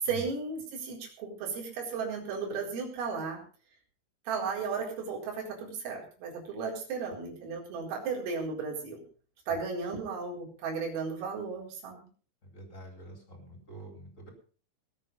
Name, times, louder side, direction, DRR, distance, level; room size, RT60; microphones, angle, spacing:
voice 1, 0.0-3.4 4.3-9.0 9.5-12.1, right 5 dB, 80° right, 0 dB, 7.0 m, -35 dB
voice 2, 12.4-14.3, right 2 dB, 15° left, 3 dB, 3.6 m, -47 dB
20.5 x 8.7 x 5.4 m, 0.41 s
omnidirectional pair, 5.9 m